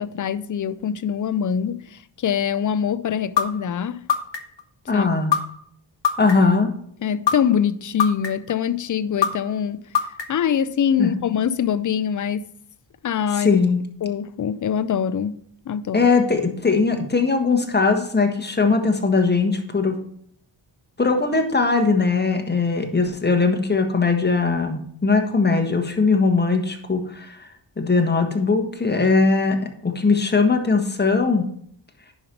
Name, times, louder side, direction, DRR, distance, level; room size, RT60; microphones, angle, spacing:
voice 1, 0.0-4.0 4.9-5.1 7.0-9.8 10.3-12.5 13.0-13.6 14.0-16.1, left 8 dB, 40° left, 0.5 m, -24 dB
sound 1, 3.4-3.5 4.1-4.6 5.3-5.4 6.0-6.6 7.3-7.4 8.0-8.5 9.2-9.3 10.0-10.5, left 8 dB, 65° left, 1.1 m, -20 dB
voice 2, 4.9-5.3 6.2-6.7 11.0-11.1 13.3-13.8 15.9-20.0 21.0-27.5 27.8-29.6 29.8-31.5, left 4 dB, 20° left, 1.4 m, -20 dB
9.9 x 5.4 x 4.5 m
wide cardioid pair, 95°, 47 cm